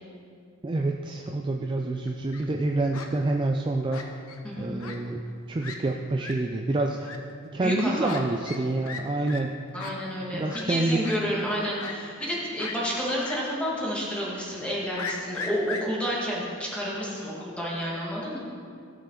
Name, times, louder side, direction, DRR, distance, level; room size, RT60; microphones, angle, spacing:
voice 1, 0.6-4.1 4.6-5.2 5.5-7.1 7.5-9.5 10.3-11.0, right 2 dB, 20° right, 2 dB, 0.3 m, -27 dB
Fowl, 2.0-2.5 2.9-3.1 3.9-4.4 4.8-5.0 5.3-5.4 5.6-5.8 6.2-6.3 7.0-7.2 8.0-8.2 8.5-8.6 8.8-9.0 9.3-9.4 9.8-9.9 10.5-10.6 11.0-11.2 11.8-12.3 12.6-12.8 13.2-13.4 13.7-13.8 15.0-16.2, left 5 dB, 80° left, 0.8 m, -37 dB
voice 2, 7.6-8.1 9.7-18.4, equal, 5° left, -5 dB, 1.7 m, -30 dB
15.0 x 5.6 x 3.8 m, 2.4 s
head